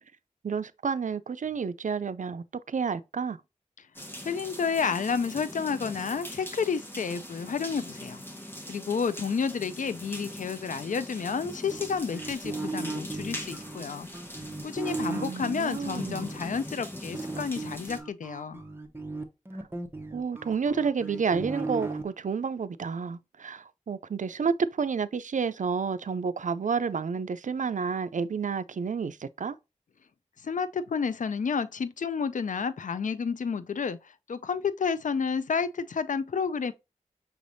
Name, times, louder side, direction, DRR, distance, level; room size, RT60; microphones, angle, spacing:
voice 1, 0.4-3.4 15.1-16.3 20.1-29.6, right 5 dB, 70° right, 0.4 m, -30 dB
sound 1, 3.9-18.0, left 1 dB, 15° left, 1.1 m, -41 dB
voice 2, 4.2-8.2 8.7-14.1 14.6-18.6 30.4-36.7, left 6 dB, 75° left, 0.4 m, -30 dB
sound 2, 11.7-16.4 17.1-22.0, right 3 dB, 15° right, 0.8 m, -36 dB
6.1 x 3.3 x 2.6 m
wide cardioid pair, 60°, 13 cm